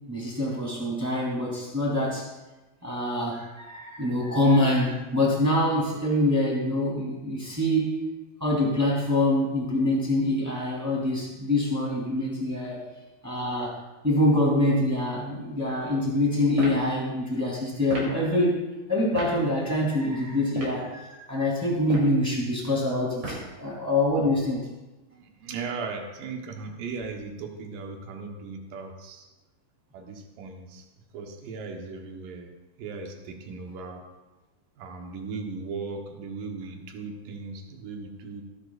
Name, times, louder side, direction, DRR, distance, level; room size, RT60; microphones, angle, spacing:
voice 1, 0.1-2.3 2.8-7.9 8.4-12.8 13.2-13.8 14.0-18.6 18.9-24.6, left 1 dB, 5° right, -5 dB, 2.2 m, -25 dB
sound 1, 16.5-16.8 17.9-18.1 19.1-19.3 20.4-20.8 21.8-22.2 23.2-23.5, right 1 dB, 40° right, 3.8 m, -34 dB
voice 2, 25.1-29.3 29.9-30.9 31.1-32.5 32.8-34.0 34.8-38.4, right 4 dB, 65° right, 3 dB, 2.3 m, -37 dB
17.5 x 11.0 x 2.5 m, 1.1 s
omnidirectional pair, 5.1 m